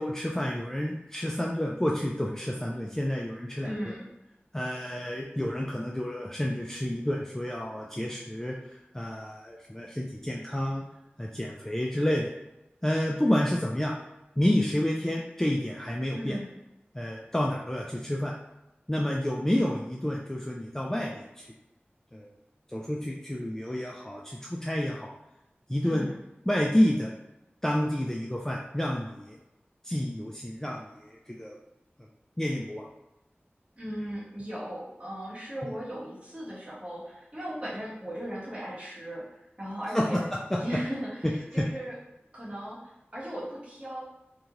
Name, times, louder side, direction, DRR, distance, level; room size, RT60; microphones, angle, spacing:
voice 1, 0.0-3.9 4.5-8.6 8.9-10.8 11.2-12.3 12.8-13.9 14.4-16.4 16.9-18.3 18.9-21.5 22.1-22.3 22.7-25.1 25.7-26.1 26.5-27.1 27.6-29.4 29.8-31.6 32.4-32.9 35.6-35.7 39.9-40.2 40.5-40.6 41.5-41.6, left 1 dB, 10° left, -2 dB, 0.3 m, -29 dB
voice 2, 3.6-4.1 16.1-16.6 25.8-26.2 33.8-39.2 39.6-40.2 40.6-41.9 42.3-44.0, equal, 30° right, -10 dB, 1.4 m, -37 dB
3.0 x 2.7 x 2.4 m, 0.92 s
wide cardioid pair, 55°, 4 cm